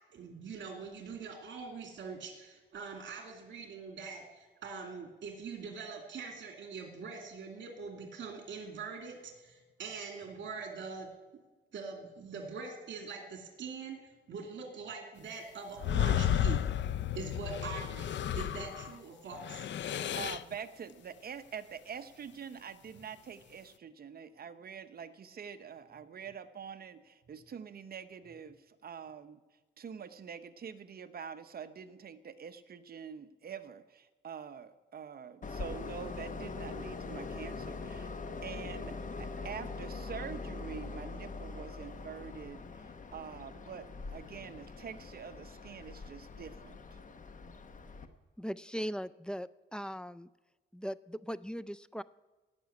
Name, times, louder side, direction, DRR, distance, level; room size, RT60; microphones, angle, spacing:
voice 1, 0.1-11.1 11.7-16.7 17.1-19.7, right 5 dB, 70° right, 2 dB, 2.4 m, -43 dB
sound 1, 15.8-19.0 19.3-20.5, left 10 dB, 70° left, 0.5 m, -32 dB
voice 2, 20.1-29.4 29.8-38.1 38.4-47.0, right 7 dB, 55° right, 11 dB, 0.8 m, -46 dB
Train, 35.4-48.1, left 3 dB, 40° left, 1.1 m, -43 dB
voice 3, 48.4-50.3 50.7-52.0, equal, 5° left, 15 dB, 0.3 m, -39 dB
17.0 x 6.0 x 9.5 m, 1.2 s
wide cardioid pair, 130°, 19 cm